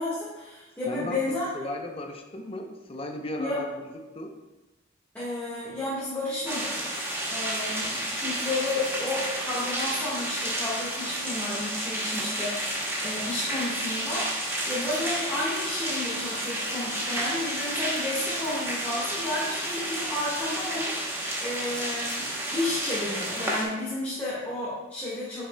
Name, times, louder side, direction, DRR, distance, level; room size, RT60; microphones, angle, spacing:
voice 1, 0.0-1.7 3.4-3.6 5.1-7.0 7.3-25.5, left 2 dB, 10° left, -10 dB, 1.5 m, -32 dB
voice 2, 0.9-3.7 4.1-4.3 12.2-12.5, left 1 dB, 30° left, 3 dB, 0.6 m, -36 dB
sound 1, 6.5-23.6, right 1 dB, 10° right, 0.9 m, -31 dB
8.3 x 6.0 x 2.2 m, 1.1 s
head